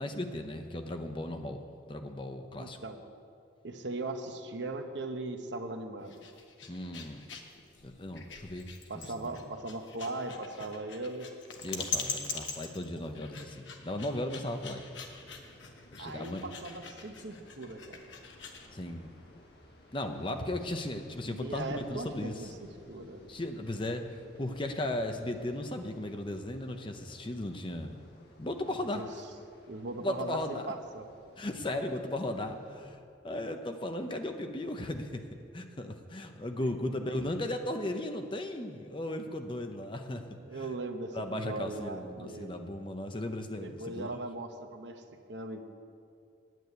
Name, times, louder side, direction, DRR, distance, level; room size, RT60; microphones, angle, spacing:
voice 1, 0.0-2.8 6.7-7.2 7.8-9.5 11.6-14.8 15.9-16.4 18.7-19.1 19.9-22.5 23.3-28.0 28.4-29.0 30.0-30.7 31.4-35.2 35.5-40.7 41.1-44.2, left 1 dB, 25° left, 6 dB, 0.7 m, -36 dB
voice 2, 2.6-3.0 3.6-6.2 8.9-11.3 16.0-18.0 21.3-22.5 22.9-23.2 28.7-29.1 29.7-31.0 36.6-36.9 40.4-42.7 43.5-45.0 45.3-45.6, right 2 dB, 70° right, 6 dB, 1.0 m, -39 dB
sound 1, 6.0-18.7, left 5 dB, 80° left, 1.2 m, -42 dB
sound 2, 14.2-32.9, left 1 dB, 55° left, 1.7 m, -57 dB
9.2 x 8.3 x 9.4 m, 2.4 s
head